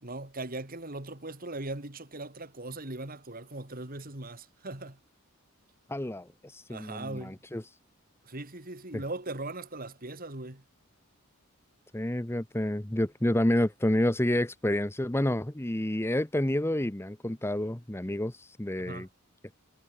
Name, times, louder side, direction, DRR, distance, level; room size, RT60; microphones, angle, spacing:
voice 1, 0.0-5.0 6.7-7.4 8.2-10.6 18.8-19.1, right 2 dB, 40° right, 3.1 m, -39 dB
voice 2, 5.9-7.6 8.9-9.0 11.9-19.1, left 1 dB, 10° left, 0.9 m, -29 dB
head